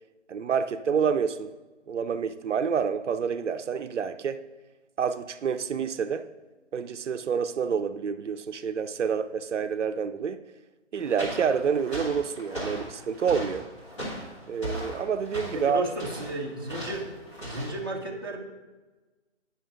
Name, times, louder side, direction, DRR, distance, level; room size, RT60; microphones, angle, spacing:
voice 1, 0.3-1.5 1.9-4.5 5.0-6.3 6.7-10.4 10.9-13.7 14.5-15.8, right 6 dB, 75° right, 0.5 m, -28 dB
sound 1, 11.0-17.9, equal, 25° left, 1.7 m, -38 dB
voice 2, 15.5-17.1 17.4-18.4, right 2 dB, 20° right, 0.6 m, -33 dB
9.1 x 5.7 x 3.6 m
hypercardioid pair, 170°, 36 cm